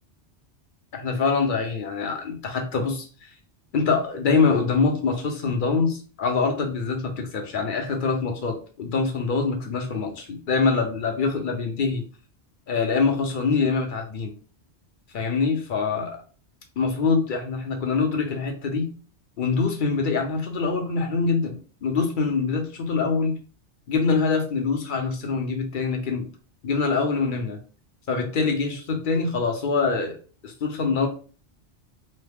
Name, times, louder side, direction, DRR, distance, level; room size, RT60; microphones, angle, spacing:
voice 1, 0.9-3.0 3.7-12.0 12.7-14.3 15.1-16.2 16.8-18.9 19.4-23.4 23.9-26.3 26.6-27.6 28.1-30.2 30.4-31.1, left 4 dB, 55° left, 3 dB, 0.7 m, -24 dB
3.1 x 2.0 x 3.3 m, 0.38 s
omnidirectional pair, 1.2 m